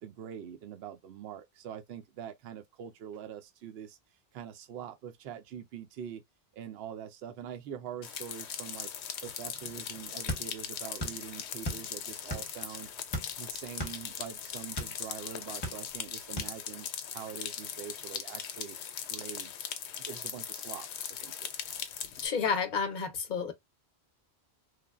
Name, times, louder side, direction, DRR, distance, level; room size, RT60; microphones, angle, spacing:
voice 1, 0.0-4.0 4.3-6.2 6.5-8.9 9.2-12.9 13.4-16.9 17.1-18.8 19.1-19.5 20.0-21.5, right 9 dB, 70° right, 0.8 m, -44 dB
sound 1, 8.0-22.3, left 8 dB, 85° left, 0.9 m, -40 dB
sound 2, 10.3-11.2 11.5-12.6 13.1-15.0 15.4-16.1 16.4-16.6, equal, 25° left, 0.8 m, -36 dB
voice 2, 22.2-23.5, left 5 dB, 50° left, 0.7 m, -30 dB
3.2 x 2.1 x 2.3 m
omnidirectional pair, 1.1 m